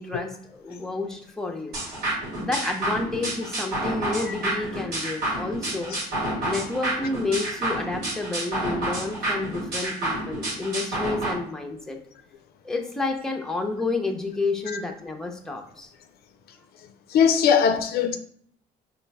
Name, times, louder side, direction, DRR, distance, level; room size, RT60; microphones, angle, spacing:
voice 1, 0.0-1.8 2.4-6.0 6.4-12.0 12.6-15.9, left 3 dB, 5° left, 0.6 m, -30 dB
sound 1, 1.7-11.3, right 1 dB, 65° right, 1.5 m, -29 dB
voice 2, 17.1-18.2, left 7 dB, 65° left, 0.4 m, -20 dB
4.3 x 2.4 x 3.4 m
cardioid pair, 110°, 17 cm